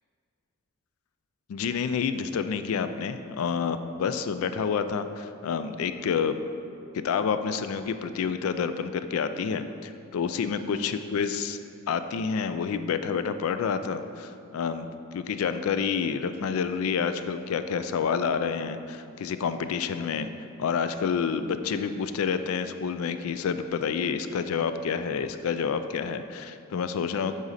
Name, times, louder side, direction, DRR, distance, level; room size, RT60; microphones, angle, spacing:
voice 1, 1.5-6.4 6.9-11.6 11.9-20.3 20.6-27.4, left 6 dB, 90° left, 10 dB, 0.3 m, -28 dB
7.9 x 3.9 x 4.1 m, 2.5 s
head